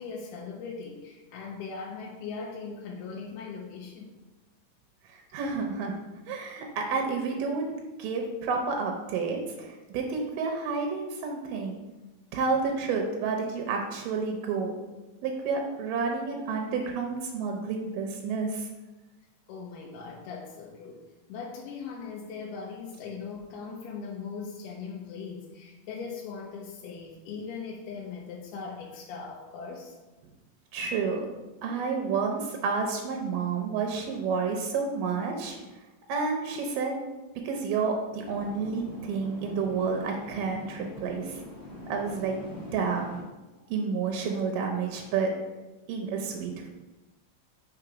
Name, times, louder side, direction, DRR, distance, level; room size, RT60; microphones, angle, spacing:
voice 1, 0.0-4.2 19.5-21.0 21.3-29.9, left 5 dB, 85° left, -1 dB, 2.2 m, -39 dB
voice 2, 5.1-6.0 6.3-7.7 8.0-11.8 12.3-14.7 15.2-18.7 30.7-31.3 31.6-35.6 36.1-36.9 37.4-41.4 41.9-42.4 42.7-43.2 43.7-45.3 45.9-46.7, right 5 dB, 90° right, 2 dB, 2.4 m, -30 dB
sound 1, 38.2-43.2, left 1 dB, 35° left, 1.9 m, -43 dB
5.6 x 3.7 x 4.9 m, 1.1 s
omnidirectional pair, 3.8 m